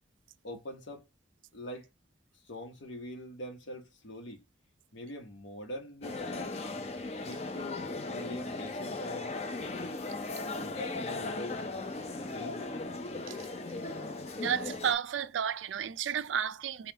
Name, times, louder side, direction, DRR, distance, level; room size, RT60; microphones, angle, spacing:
voice 1, 0.4-1.1 1.5-1.9 2.4-4.4 4.9-6.6 7.2-9.3 10.5-12.0 12.3-12.7, left 1 dB, 80° left, 1.0 m, -44 dB
sound 1, 6.0-14.9, left 3 dB, 35° left, 0.6 m, -37 dB
voice 2, 14.4-16.9, right 8 dB, 85° right, 0.4 m, -32 dB
5.5 x 2.3 x 2.8 m
head